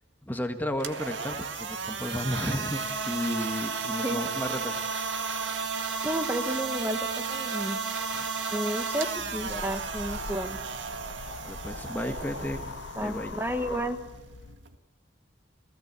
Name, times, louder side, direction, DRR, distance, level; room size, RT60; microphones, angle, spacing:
voice 1, 0.2-2.8 3.1-5.0 8.1-8.3 11.4-13.3, equal, 10° left, 6 dB, 1.5 m, -33 dB
sound 1, 0.7-14.8, right 5 dB, 80° right, 1.9 m, -34 dB
voice 2, 6.0-7.0 7.3-7.8 8.5-10.6 13.0-14.0, right 1 dB, 10° right, 8 dB, 1.4 m, -31 dB
sound 2, 9.2-14.6, left 4 dB, 85° left, 0.7 m, -41 dB
30.0 x 17.5 x 8.2 m, 1.2 s
head